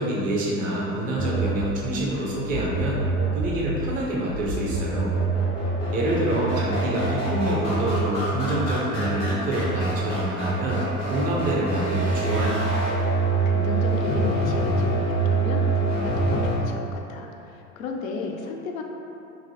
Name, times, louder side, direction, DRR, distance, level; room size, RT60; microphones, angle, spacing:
voice 1, 0.0-3.0 3.3-5.1 5.9-10.8 11.1-12.6, right 1 dB, 20° right, -4 dB, 0.4 m, -26 dB
sound 1, 1.2-16.6, right 2 dB, 85° left, 1.4 m, -25 dB
voice 2, 13.2-18.8, left 4 dB, 65° left, 2 dB, 0.5 m, -34 dB
3.0 x 2.4 x 3.0 m, 2.8 s
figure-of-eight pair, 90°, 44 cm